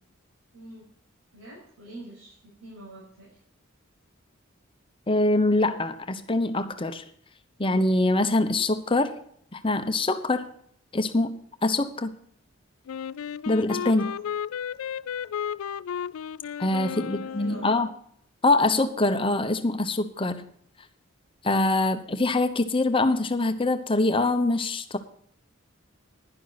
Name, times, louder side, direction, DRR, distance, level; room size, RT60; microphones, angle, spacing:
voice 1, 0.5-0.8 1.3-3.3 13.8-14.2 16.6-17.7, right 1 dB, 85° right, 6.3 m, -45 dB
voice 2, 5.1-7.0 7.6-9.1 9.5-10.5 10.9-12.1 13.5-14.1 16.6-17.9 18.4-20.5 21.4-25.0, left 2 dB, 25° left, 0.9 m, -24 dB
Wind instrument woodwind instrument, 12.9-18.0, left 8 dB, 85° left, 0.4 m, -34 dB
11.5 x 10.5 x 4.1 m
head